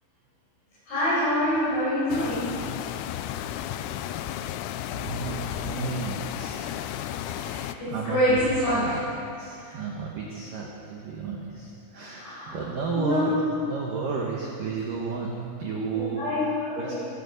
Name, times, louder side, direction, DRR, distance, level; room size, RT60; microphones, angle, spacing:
voice 1, 0.9-2.4 7.2-9.0 9.6-9.8 12.1-12.6 12.9-13.7 15.9-16.9, left 1 dB, 55° left, -13 dB, 7.4 m, -26 dB
sound 1, 2.1-7.7, left 11 dB, 90° left, 3.4 m, -33 dB
voice 2, 5.0-7.3 7.9-8.4 8.7-9.0 9.4-13.4 13.6-16.3 16.8-16.9, right 5 dB, 75° right, -2 dB, 2.0 m, -33 dB
19.0 x 14.0 x 5.4 m, 2.7 s
omnidirectional pair, 5.9 m